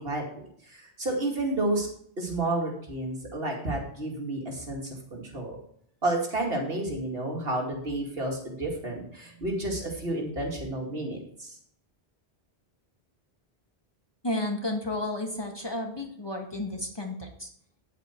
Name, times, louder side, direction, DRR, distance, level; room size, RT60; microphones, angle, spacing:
voice 1, 0.0-1.9 2.2-4.8 5.1-5.6 6.0-11.6, right 2 dB, 65° right, 0 dB, 2.5 m, -31 dB
voice 2, 14.2-17.5, left 1 dB, 25° left, 1 dB, 1.6 m, -32 dB
9.2 x 8.0 x 4.5 m, 0.66 s
omnidirectional pair, 1.1 m